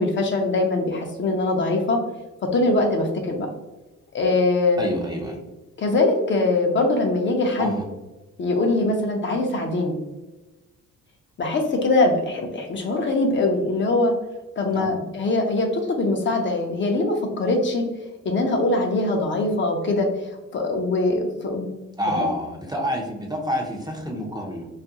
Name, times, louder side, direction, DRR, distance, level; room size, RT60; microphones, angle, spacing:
voice 1, 0.0-2.0 2.5-3.5 4.1-4.9 5.8-7.7 8.4-10.0 11.4-14.1 14.6-17.8 18.2-21.7 22.2-22.3, left 2 dB, 40° left, 2 dB, 0.5 m, -22 dB
voice 2, 4.8-5.4 7.6-7.8 14.7-14.9 22.0-24.7, equal, 15° right, 0 dB, 0.5 m, -28 dB
2.4 x 2.2 x 2.7 m, 1.1 s
cardioid pair, 90°, 30 cm